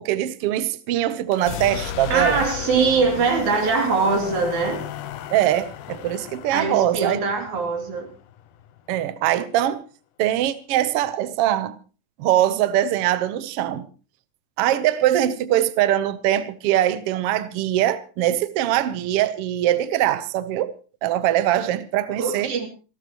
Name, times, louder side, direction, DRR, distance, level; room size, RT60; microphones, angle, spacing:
voice 1, 0.0-2.4 5.3-7.2 8.9-9.8 10.2-11.8 12.2-13.9 14.6-20.7 21.0-22.5, right 12 dB, 80° right, 1.3 m, -22 dB
sound 1, 1.3-9.0, left 11 dB, 70° left, 2.3 m, -35 dB
voice 2, 2.1-4.8 6.5-8.1 22.2-22.7, right 4 dB, 60° right, 4.1 m, -22 dB
28.0 x 12.5 x 3.0 m
omnidirectional pair, 3.9 m